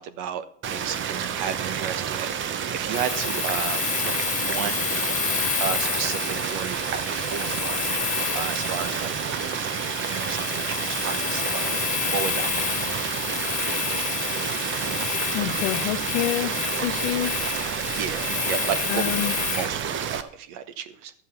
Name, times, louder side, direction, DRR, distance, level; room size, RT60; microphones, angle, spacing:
voice 1, 0.0-4.9 5.6-7.8 8.3-9.1 10.1-12.7 17.9-21.1, right 8 dB, 60° right, 12 dB, 1.1 m, -33 dB
sound 1, 0.6-20.2, right 8 dB, 30° right, 0.8 m, -29 dB
Domestic sounds home sounds, 2.9-19.7, left 9 dB, 20° left, 0.6 m, -30 dB
voice 2, 15.3-16.5 16.8-17.3 18.9-19.3, left 14 dB, 70° left, 10 dB, 1.1 m, -27 dB
12.0 x 7.4 x 5.7 m, 0.63 s
supercardioid pair, 125°, 38 cm